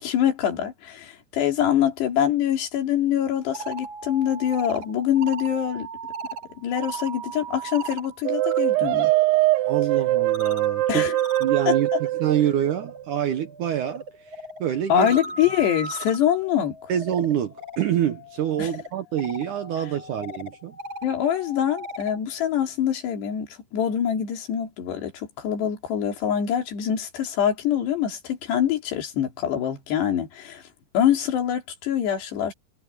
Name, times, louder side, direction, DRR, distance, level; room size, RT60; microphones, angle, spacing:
voice 1, 0.0-5.9 6.6-9.1 10.9-11.2 11.7-12.0 14.9-16.9 18.6-18.7 21.0-30.6 30.9-32.5, left 10 dB, 80° left, 5.0 m, -24 dB
sound 1, 3.3-8.6 8.9-22.2, right 3 dB, 40° right, 5.8 m, -39 dB
sound 2, 8.2-13.0, right 16 dB, 85° right, 2.6 m, -22 dB
voice 2, 9.7-11.1 11.4-15.1 16.9-20.8, right 10 dB, 70° right, 2.0 m, -26 dB
omnidirectional pair, 4.8 m